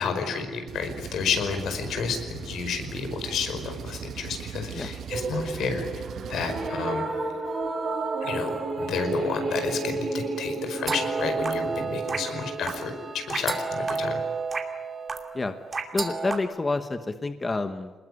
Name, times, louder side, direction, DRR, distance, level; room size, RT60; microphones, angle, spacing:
voice 1, 0.0-6.0 6.3-7.1 8.2-14.2, left 5 dB, 75° left, 7 dB, 5.1 m, -31 dB
Engine, 0.7-6.7, right 8 dB, 65° right, 1.4 m, -39 dB
sound 1, 5.1-13.4, right 3 dB, 45° right, 5.0 m, -32 dB
sound 2, 10.8-16.4, right 4 dB, 25° right, 2.6 m, -31 dB
voice 2, 15.9-17.9, left 3 dB, 20° left, 8 dB, 1.1 m, -29 dB
27.0 x 20.5 x 9.8 m, 1.3 s
wide cardioid pair, 170°, 0 cm